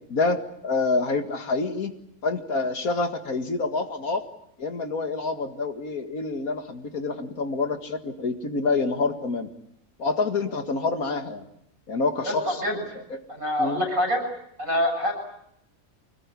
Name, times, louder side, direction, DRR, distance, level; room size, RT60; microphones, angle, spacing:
voice 1, 0.1-1.9 2.2-4.3 4.6-9.5 10.0-11.4 11.9-12.6 12.9-13.2 13.6-13.8, left 3 dB, 90° left, 7 dB, 2.4 m, -27 dB
voice 2, 13.3-14.2 14.6-15.1, left 1 dB, 70° right, 5 dB, 7.5 m, -25 dB
25.0 x 20.0 x 9.8 m, 0.76 s
omnidirectional pair, 1.5 m